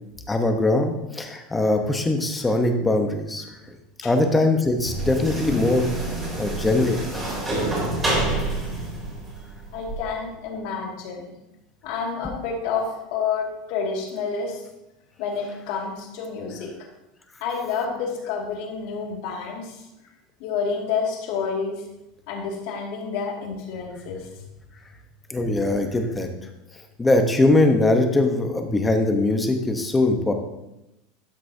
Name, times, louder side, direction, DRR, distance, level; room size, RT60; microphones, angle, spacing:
voice 1, 0.3-3.4 4.0-5.9 6.4-7.0 25.3-26.3 27.0-30.3, left 2 dB, 10° left, 5 dB, 1.0 m, -21 dB
sound 1, 4.8-10.0, right 2 dB, 15° right, 3.4 m, -27 dB
voice 2, 9.7-11.3 11.8-14.6 15.2-16.7 17.4-19.8 20.4-21.8 22.3-24.4, left 5 dB, 65° left, 0 dB, 2.3 m, -29 dB
12.5 x 6.0 x 2.8 m, 0.91 s
supercardioid pair, 125°, 0 cm